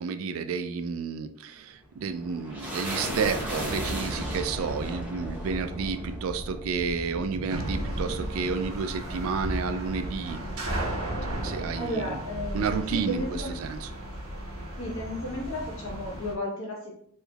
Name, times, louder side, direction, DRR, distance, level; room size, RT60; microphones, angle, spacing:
voice 1, 0.0-10.4 11.4-12.2 12.5-13.9, right 5 dB, 65° right, 9 dB, 0.3 m, -31 dB
sound 1, 1.7-12.5, right 1 dB, 10° right, 0.8 m, -35 dB
sound 2, 7.5-16.3, right 1 dB, 90° right, 0.8 m, -36 dB
voice 2, 11.7-13.6 14.8-16.9, left 1 dB, 65° left, -2 dB, 1.1 m, -34 dB
3.2 x 3.0 x 2.3 m, 0.65 s
head